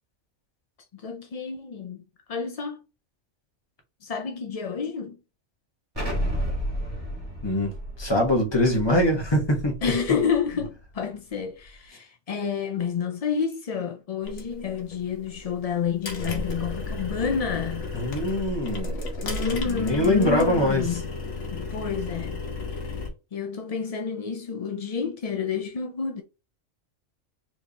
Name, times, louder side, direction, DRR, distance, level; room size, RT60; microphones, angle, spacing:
voice 1, 0.9-2.0 2.3-2.8 4.0-5.2 9.8-17.9 19.2-21.1 21.5-22.4 23.3-26.2, left 6 dB, 55° left, 0.4 m, -29 dB
Explosion, 5.9-10.6, equal, 20° right, 1.8 m, -32 dB
voice 2, 7.4-9.8 17.9-19.0 19.7-20.9, left 1 dB, 20° left, 1.2 m, -23 dB
sound 1, 14.2-23.1, left 3 dB, 75° left, 1.5 m, -33 dB
4.6 x 3.4 x 2.8 m
omnidirectional pair, 1.3 m